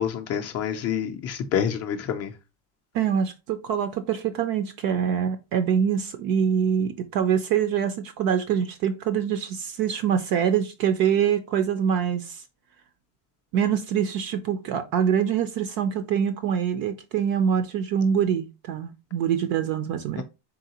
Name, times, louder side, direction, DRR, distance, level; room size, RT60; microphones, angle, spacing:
voice 1, 0.0-2.3 20.2-20.3, left 8 dB, 35° left, 0.4 m, -27 dB
voice 2, 2.9-12.4 13.5-20.2, right 8 dB, 50° right, 0.5 m, -24 dB
3.8 x 3.8 x 2.8 m
cardioid pair, 180°, 45 cm